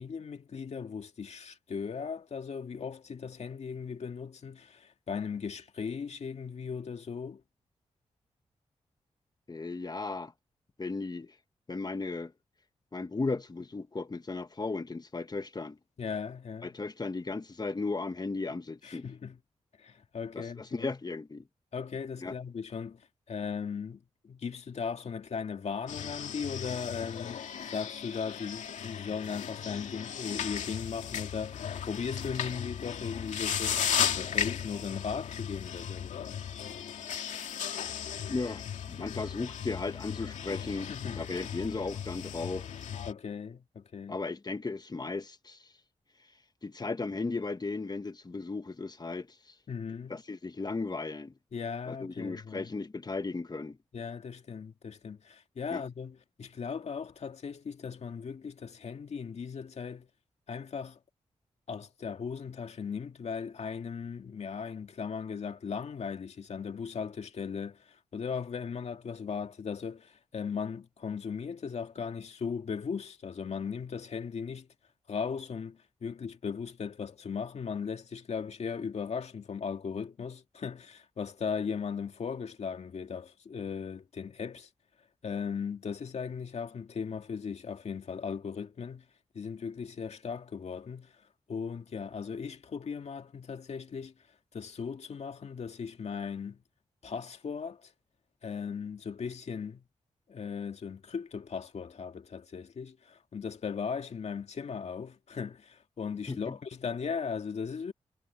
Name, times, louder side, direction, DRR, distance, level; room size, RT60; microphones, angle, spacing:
voice 1, 0.0-7.4 16.0-16.7 18.8-19.4 19.8-20.9 21.7-33.8 34.1-36.4 40.8-41.2 43.1-44.2 49.7-50.2 51.5-52.7 53.9-60.1 60.5-61.0 61.7-74.7 75.1-84.7 85.2-89.0 89.3-91.1 91.5-94.1 94.5-96.6 97.0-97.9 98.4-99.8 100.3-107.9, left 6 dB, 65° left, 2.1 m, -38 dB
voice 2, 9.5-10.3 10.8-11.3 11.7-12.3 12.9-15.8 16.6-19.0 20.3-21.5 22.2-22.3 38.3-42.7 44.1-45.7 46.6-49.4 50.1-51.3 51.9-53.8 55.7-55.8 106.3-106.6, left 3 dB, 35° left, 1.5 m, -36 dB
sound 1, 25.9-43.1, left 8 dB, 90° left, 2.3 m, -36 dB
cardioid pair, 60°, 12 cm